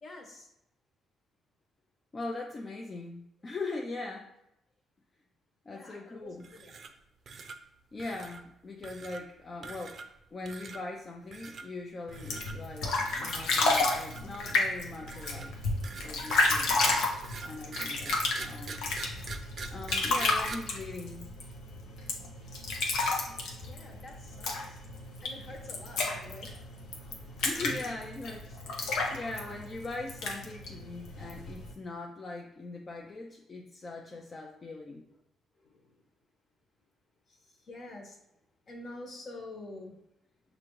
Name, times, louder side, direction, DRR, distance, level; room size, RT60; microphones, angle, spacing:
voice 1, 0.0-0.5 5.7-6.8 23.3-28.1 35.7-35.9 37.3-38.2 38.7-39.9, left 2 dB, 55° left, 0 dB, 1.3 m, -48 dB
voice 2, 2.1-4.3 5.7-6.4 7.9-15.5 16.0-18.9 19.7-21.3 27.4-35.1, left 3 dB, 35° left, 0 dB, 0.5 m, -41 dB
sound 1, 6.4-7.0 7.3-7.6 8.0-8.4 8.8-9.2 9.6-10.2 10.5-10.8 11.3-11.6 12.1-12.5 12.9-13.3 13.7-14.7 15.1-20.5, right 4 dB, 55° right, 0.5 m, -44 dB
sound 2, 12.1-31.7, left 3 dB, 85° left, 0.8 m, -32 dB
6.0 x 2.6 x 3.0 m, 0.86 s
cardioid pair, 90°, 0 cm